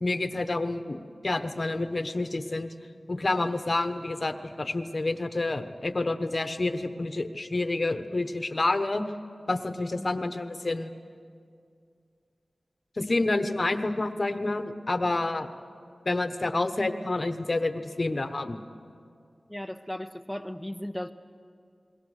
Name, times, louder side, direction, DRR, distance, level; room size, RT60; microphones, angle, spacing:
voice 1, 0.0-2.7 3.1-9.0 9.5-10.9 13.0-15.5 16.0-18.6, left 2 dB, 45° left, 9 dB, 1.1 m, -28 dB
voice 2, 19.5-21.1, left 1 dB, ahead, 5 dB, 0.9 m, -36 dB
29.0 x 21.5 x 6.5 m, 2.3 s
wide cardioid pair, 55°, 0 cm